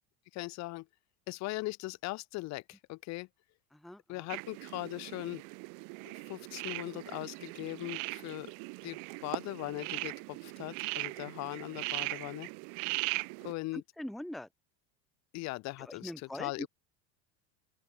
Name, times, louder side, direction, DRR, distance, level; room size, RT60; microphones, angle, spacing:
voice 1, 0.3-0.8 1.3-3.3 4.1-5.4 6.0-8.5 8.8-12.5 13.4-13.8 15.3-16.1 16.4-16.7, left 20 dB, 45° left, 1.3 m, -39 dB
voice 2, 3.7-4.3 10.6-10.8 13.7-14.5 15.8-16.7, left 1 dB, ahead, 0.9 m, -43 dB
sound 1, 4.3-13.5, right 38 dB, 60° right, 1.1 m, -39 dB
open air
supercardioid pair, 150°, 36 cm